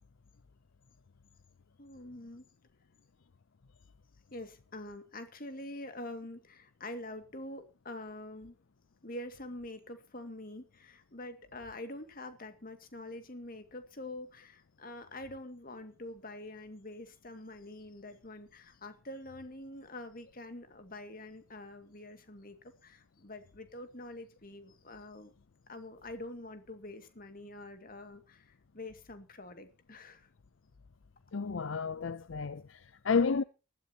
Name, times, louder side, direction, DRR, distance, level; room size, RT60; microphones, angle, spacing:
voice 1, 1.8-2.4 4.3-8.6 9.0-25.3 25.7-30.3, left 1 dB, 45° left, 2.3 m, -46 dB
voice 2, 31.3-33.4, left 5 dB, 70° left, 0.6 m, -31 dB
19.5 x 13.0 x 3.0 m
head